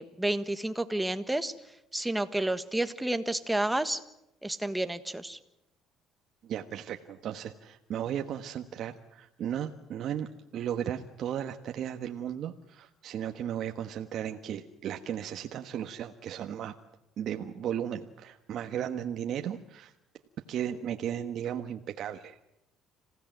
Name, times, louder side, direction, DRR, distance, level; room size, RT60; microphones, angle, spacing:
voice 1, 0.0-1.5 1.9-4.0 4.4-5.4, right 1 dB, 5° right, 10 dB, 1.5 m, -30 dB
voice 2, 6.4-10.3 10.5-16.7 17.2-19.9 20.5-22.5, right 9 dB, 60° right, 6 dB, 1.3 m, -35 dB
27.0 x 16.5 x 9.2 m, 0.89 s
cardioid pair, 110°, 0 cm